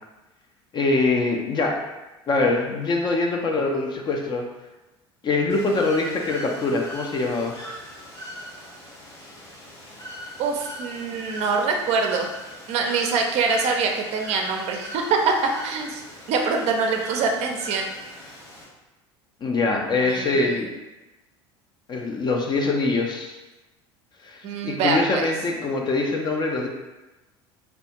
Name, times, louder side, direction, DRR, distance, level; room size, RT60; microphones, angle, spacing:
voice 1, 0.7-1.8 2.3-4.4 5.2-7.5 19.4-20.7 21.9-23.4 24.2-26.7, left 3 dB, 30° left, 1 dB, 0.4 m, -23 dB
Bird / Water, 5.5-18.6, equal, 85° left, 0.8 m, -41 dB
voice 2, 10.4-12.3 12.7-17.9 20.0-20.6 24.4-25.3, right 4 dB, 50° right, 3 dB, 0.4 m, -24 dB
2.3 x 2.2 x 2.8 m, 1.1 s
hypercardioid pair, 75°, 14 cm